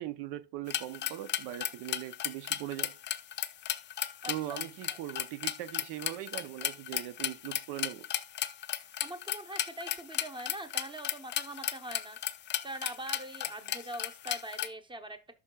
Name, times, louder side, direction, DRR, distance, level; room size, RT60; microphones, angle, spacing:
voice 1, 0.0-3.0 4.3-8.1, right 14 dB, 70° right, 0.7 m, -40 dB
sound 1, 0.7-14.7, left 11 dB, 30° left, 0.4 m, -35 dB
voice 2, 4.2-4.6 4.9-5.0 8.8-12.2 12.6-15.2, right 1 dB, 10° right, 0.9 m, -43 dB
12.0 x 4.9 x 2.3 m
cardioid pair, 130°, 41 cm